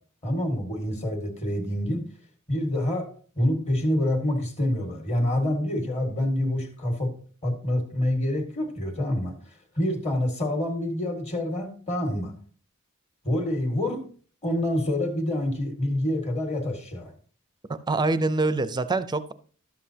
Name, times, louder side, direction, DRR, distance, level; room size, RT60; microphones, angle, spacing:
voice 1, 0.2-2.0 2.5-3.1 3.4-7.1 7.4-9.3 9.8-12.3 13.2-14.0 14.4-17.1, left 1 dB, 30° left, 4 dB, 1.8 m, -27 dB
voice 2, 17.7-19.3, right 3 dB, 20° right, 13 dB, 0.5 m, -25 dB
11.5 x 7.6 x 2.8 m, 0.43 s
head